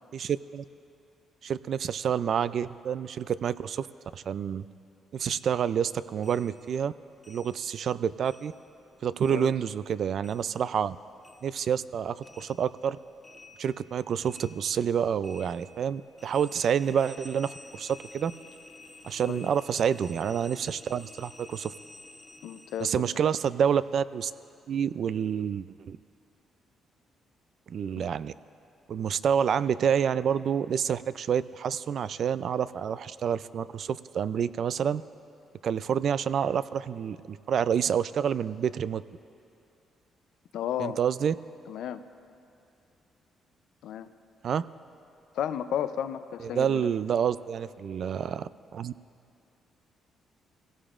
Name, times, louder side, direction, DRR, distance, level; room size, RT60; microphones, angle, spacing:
voice 1, 0.1-0.6 1.4-3.9 4.1-4.7 5.1-6.9 7.3-8.5 9.0-11.0 11.4-13.0 13.6-18.3 19.0-21.7 22.8-24.3 24.7-26.0 27.7-28.3 28.9-35.0 35.6-39.0 40.8-41.3 44.4-44.7 46.4-48.9, right 8 dB, 60° right, 15 dB, 0.3 m, -28 dB
sound 1, 5.2-7.9 8.2-11.0 11.2-23.0, left 2 dB, 15° left, 0.8 m, -52 dB
voice 2, 22.4-23.0 27.9-28.0 40.5-41.0 41.7-42.0 43.8-44.1 45.3-46.9, left 10 dB, 80° left, 11 dB, 0.5 m, -33 dB
22.0 x 16.5 x 2.5 m, 2.6 s
cardioid pair, 90°, 0 cm